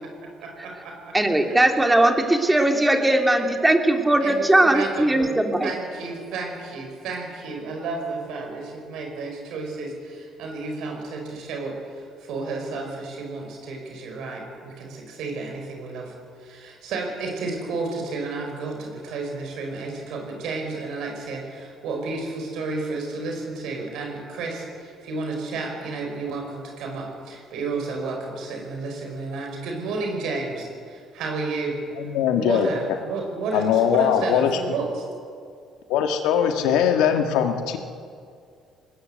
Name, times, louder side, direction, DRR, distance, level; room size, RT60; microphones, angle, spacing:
voice 1, 0.4-1.2 4.2-5.3 5.6-31.8 32.3-35.0, right 3 dB, 75° right, 2 dB, 5.1 m, -32 dB
voice 2, 1.1-5.7, right 1 dB, 10° right, 4 dB, 2.8 m, -19 dB
voice 3, 32.0-32.7 33.5-34.5 35.9-37.8, left 8 dB, 80° left, 5 dB, 1.9 m, -21 dB
20.0 x 19.5 x 8.1 m, 2.3 s
supercardioid pair, 70°, 0 cm